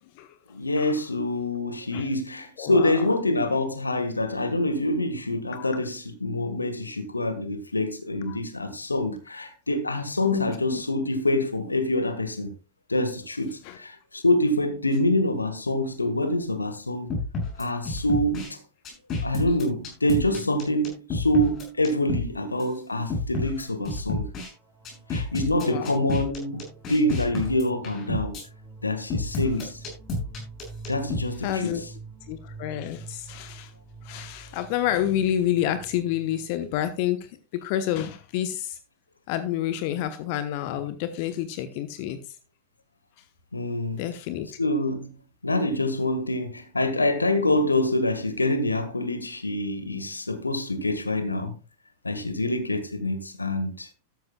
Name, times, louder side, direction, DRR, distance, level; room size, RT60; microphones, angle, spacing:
voice 1, 0.5-12.5 12.9-17.1 17.6-18.6 19.2-24.3 25.1-28.3 28.8-29.8 30.9-31.8 43.5-44.0 44.6-45.0 45.4-51.5 52.0-53.9, left 1 dB, 80° left, 1.6 m, -26 dB
voice 2, 2.6-3.0 5.5-5.7 8.3-8.4 10.3-10.4 10.7-10.8 13.6-13.8 25.6-26.0 31.4-31.8 32.3-33.7 34.0-38.8 39.3-42.2 44.0-44.5, left 11 dB, 45° left, 1.1 m, -29 dB
sound 1, 17.1-18.5 18.8-22.3 22.6-22.7 23.1-24.5 24.8-28.4 29.1-31.2, left 2 dB, 30° left, 7.1 m, -30 dB
sound 2, 23.2-23.3 23.6-36.5, right 3 dB, 25° right, 2.8 m, -47 dB
13.5 x 13.0 x 2.4 m
figure-of-eight pair, 90°, 0 cm